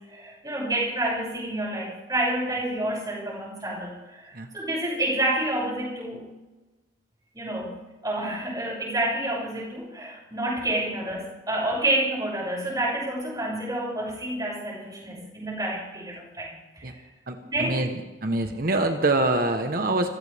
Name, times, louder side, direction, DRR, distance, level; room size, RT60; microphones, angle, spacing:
voice 1, 0.1-6.2 7.3-7.7 8.0-17.0 17.4-17.8, right 1 dB, 20° right, -4 dB, 6.6 m, -29 dB
voice 2, 17.3-17.9 18.2-20.1, right 2 dB, 50° right, 5 dB, 1.2 m, -25 dB
26.0 x 15.5 x 3.6 m, 1.2 s
head